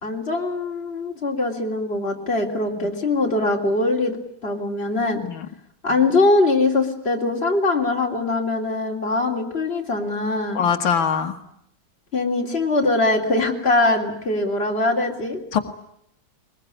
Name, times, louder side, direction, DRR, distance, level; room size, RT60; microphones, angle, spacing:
voice 1, 0.0-4.2 4.4-5.2 5.8-10.6 12.1-15.4, left 2 dB, 30° left, 1 dB, 3.6 m, -22 dB
voice 2, 10.6-11.4 15.5-15.6, left 7 dB, 90° left, 5 dB, 2.3 m, -22 dB
22.0 x 21.0 x 9.8 m, 0.74 s
omnidirectional pair, 2.1 m